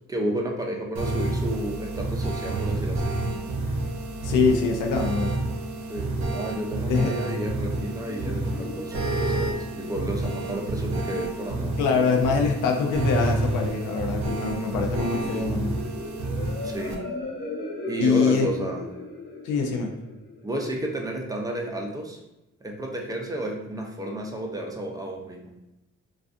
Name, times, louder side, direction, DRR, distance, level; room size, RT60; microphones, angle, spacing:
voice 1, 0.1-3.2 5.9-11.8 16.6-17.0 17.9-18.9 20.4-22.2 22.6-25.5, right 1 dB, 10° right, 1 dB, 0.4 m, -32 dB
sound 1, 1.0-17.0, right 2 dB, 70° right, 0.6 m, -29 dB
voice 2, 4.2-5.3 6.9-7.1 11.8-15.7 18.0-18.5 19.4-19.9, left 5 dB, 90° left, 2 dB, 0.5 m, -24 dB
sound 2, 7.6-21.2, left 2 dB, 35° left, 0.6 m, -39 dB
2.5 x 2.3 x 2.4 m, 0.92 s
cardioid pair, 90°, 30 cm